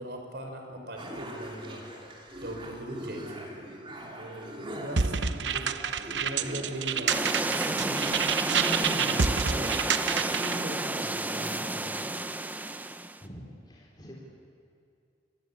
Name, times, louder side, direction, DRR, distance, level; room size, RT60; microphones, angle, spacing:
voice 1, 0.0-1.8 2.4-3.5 4.1-8.2 8.4-9.8 10.1-11.9, right 1 dB, 65° right, 3 dB, 4.8 m, -39 dB
sound 1, 1.0-8.3, right 1 dB, 30° right, 3.3 m, -42 dB
sound 2, 5.0-10.6, right 6 dB, 85° right, 0.9 m, -29 dB
voice 2, 5.4-6.3 13.2-14.2, equal, 25° left, -3 dB, 3.9 m, -47 dB
sound 3, 7.1-13.2, right 2 dB, 10° right, 0.7 m, -31 dB
27.0 x 22.5 x 8.5 m, 2.5 s
head